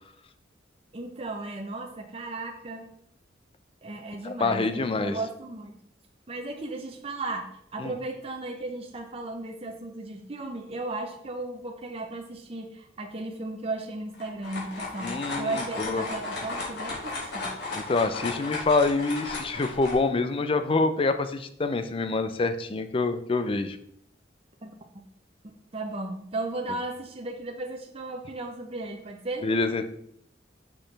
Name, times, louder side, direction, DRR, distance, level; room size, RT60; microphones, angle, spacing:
voice 1, 0.9-2.9 3.8-5.7 6.3-15.1 15.4-17.5 24.6-24.7 25.7-29.5, right 2 dB, 30° right, 2 dB, 0.7 m, -35 dB
voice 2, 4.2-5.2 7.8-7.9 15.0-16.0 17.7-23.8 29.4-29.9, left 3 dB, 30° left, 10 dB, 0.4 m, -26 dB
sound 1, 14.1-20.0, left 3 dB, 60° left, 2.2 m, -35 dB
6.2 x 6.0 x 3.3 m, 0.70 s
head